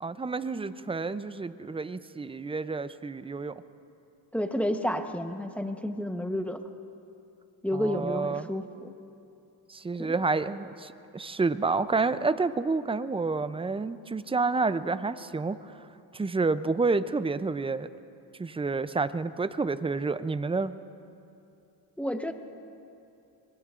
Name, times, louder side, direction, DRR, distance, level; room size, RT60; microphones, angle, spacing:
voice 1, 0.0-3.6 7.7-8.5 9.7-15.9 16.1-17.9 18.4-20.8, right 4 dB, 15° right, 13 dB, 0.4 m, -29 dB
voice 2, 4.3-6.6 7.6-8.9 10.0-10.1 22.0-22.3, equal, 5° left, 6 dB, 1.0 m, -30 dB
26.0 x 21.5 x 2.5 m, 2.7 s
cardioid pair, 90°, 48 cm